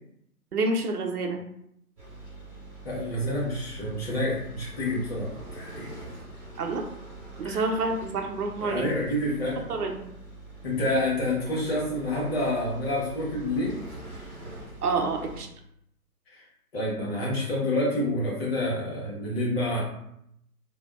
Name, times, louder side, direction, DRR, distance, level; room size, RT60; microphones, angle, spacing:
voice 1, 0.5-1.4 6.6-6.8 7.4-8.9 9.7-10.0 14.8-15.5, right 3 dB, 70° right, 4 dB, 0.6 m, -28 dB
sound 1, 2.0-15.4, right 2 dB, 5° right, 0.6 m, -44 dB
voice 2, 2.8-5.9 7.4-7.7 8.6-9.6 10.6-13.8 16.3-16.4 16.7-19.8, left 1 dB, 40° left, -5 dB, 1.1 m, -28 dB
2.7 x 2.2 x 2.2 m, 0.76 s
figure-of-eight pair, 145°, 47 cm